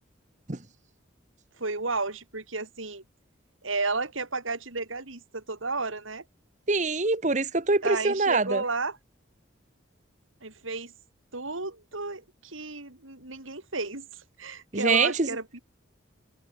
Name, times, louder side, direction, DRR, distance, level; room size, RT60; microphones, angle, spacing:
voice 1, 1.6-3.0 3.6-6.2 7.8-9.0 10.4-10.9 11.3-14.1 14.4-15.6, right 3 dB, 85° right, 4.4 m, -32 dB
voice 2, 6.7-8.6 14.7-15.3, right 3 dB, 35° right, 1.1 m, -24 dB
head